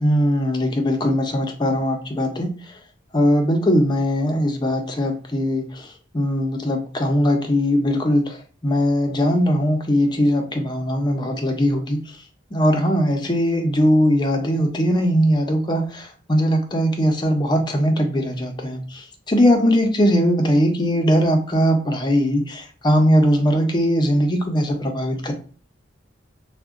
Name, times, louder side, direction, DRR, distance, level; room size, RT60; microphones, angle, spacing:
voice 1, 0.0-2.7 3.1-12.0 12.5-25.3, equal, 25° left, 3 dB, 0.5 m, -20 dB
3.6 x 2.1 x 2.4 m, 0.40 s
head